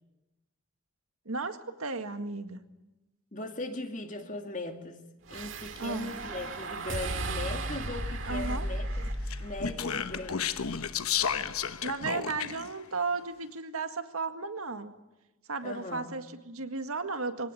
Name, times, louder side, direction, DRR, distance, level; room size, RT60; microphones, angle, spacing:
voice 1, 1.3-2.6 5.8-6.1 8.3-8.7 11.8-14.9 15.5-17.5, right 4 dB, 90° right, 8 dB, 1.9 m, -34 dB
voice 2, 3.3-10.6 15.6-16.1, left 2 dB, 35° left, 5 dB, 2.3 m, -39 dB
sound 1, 5.3-11.7, right 1 dB, 60° right, 2.4 m, -36 dB
Speech, 9.3-12.7, left 7 dB, 90° left, 1.1 m, -32 dB
23.5 x 18.0 x 9.9 m, 1.0 s
head